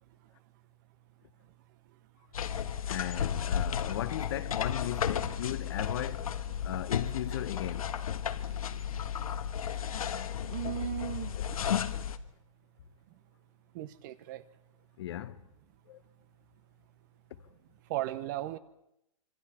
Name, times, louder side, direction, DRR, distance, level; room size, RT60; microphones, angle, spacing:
sound 1, 2.3-12.2, left 8 dB, 80° left, 1.4 m, -33 dB
voice 1, 2.9-6.3 6.6-7.9 15.0-15.4 15.9-16.0, left 12 dB, 50° left, 1.0 m, -37 dB
voice 2, 10.5-11.3 13.7-14.4 17.9-18.6, right 12 dB, 35° right, 1.0 m, -36 dB
26.0 x 23.5 x 4.4 m
hypercardioid pair, 160°, 18 cm